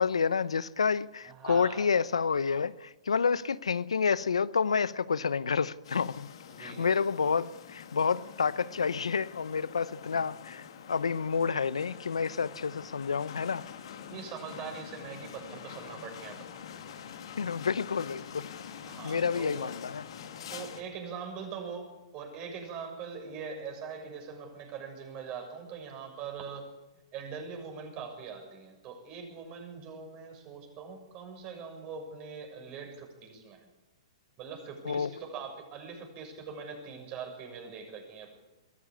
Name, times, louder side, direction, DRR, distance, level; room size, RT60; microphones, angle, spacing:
voice 1, 0.0-6.3 6.6-13.7 17.4-18.5 19.0-20.0 34.8-35.1, left 5 dB, 85° left, 0.8 m, -29 dB
voice 2, 1.3-1.9 6.5-7.0 14.0-16.6 18.8-19.7 20.5-26.7 27.1-33.7 34.4-38.4, right 6 dB, 35° right, 6.8 m, -42 dB
sound 1, 5.8-20.8, left 8 dB, 65° left, 2.6 m, -46 dB
23.0 x 14.5 x 8.6 m
hypercardioid pair, 120°, 3 cm